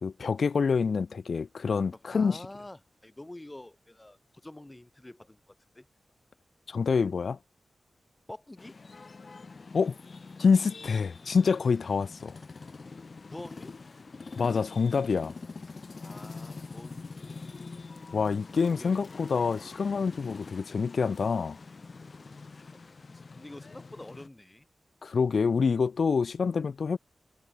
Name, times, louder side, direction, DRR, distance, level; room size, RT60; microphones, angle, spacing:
voice 1, 0.0-2.4 6.7-7.4 9.7-10.0 10.4-12.4 14.4-15.3 18.1-21.6 25.0-27.0, left 5 dB, 75° left, 0.4 m, -26 dB
voice 2, 1.9-5.9 8.3-8.8 13.3-13.8 16.0-17.7 18.7-19.0 23.1-24.7, left 1 dB, 20° left, 3.7 m, -47 dB
sound 1, 8.6-24.3, left 4 dB, 50° left, 3.3 m, -45 dB
wide cardioid pair, 90°, 0 cm